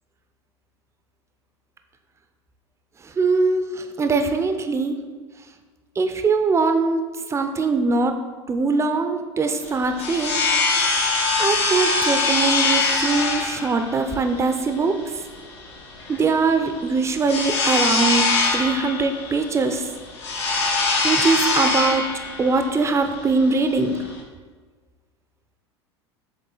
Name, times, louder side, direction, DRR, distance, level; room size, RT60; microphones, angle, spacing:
voice 1, 3.2-5.0 6.0-7.0 7.3-8.2 8.5-10.3 11.4-14.9 16.1-18.2 18.5-19.9 21.0-22.1 22.4-24.0, right 4 dB, 20° right, 7 dB, 0.6 m, -22 dB
sound 1, 9.6-24.2, left 3 dB, 75° left, 1.4 m, -23 dB
7.1 x 3.6 x 3.9 m, 1.4 s
hypercardioid pair, 85°, 15 cm